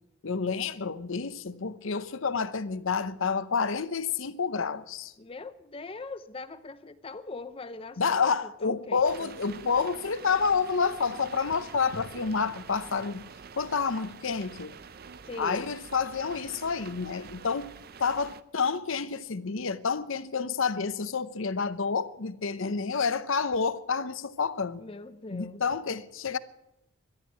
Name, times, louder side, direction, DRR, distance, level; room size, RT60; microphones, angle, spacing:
voice 1, 0.2-5.1 8.0-13.3 13.6-14.7 15.4-17.7 18.0-24.8 25.3-26.4, left 5 dB, 60° left, 0.7 m, -29 dB
voice 2, 5.2-9.3 15.2-15.7 24.8-25.6, left 3 dB, 25° left, 0.5 m, -41 dB
sound 1, 9.0-18.4, right 5 dB, 45° right, 0.5 m, -47 dB
12.5 x 12.0 x 9.2 m
head